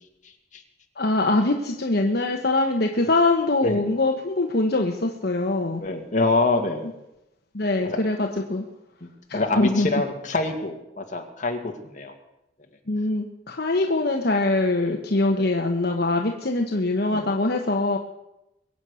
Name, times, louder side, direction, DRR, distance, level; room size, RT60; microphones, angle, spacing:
voice 1, 1.0-5.8 7.5-8.6 9.3-9.9 12.9-18.0, left 2 dB, 60° left, 2 dB, 1.2 m, -23 dB
voice 2, 5.8-6.9 7.8-8.0 9.3-12.1 14.8-14.9 17.1-17.3, left 3 dB, 45° left, 3 dB, 2.2 m, -25 dB
22.5 x 8.5 x 6.4 m, 0.90 s
head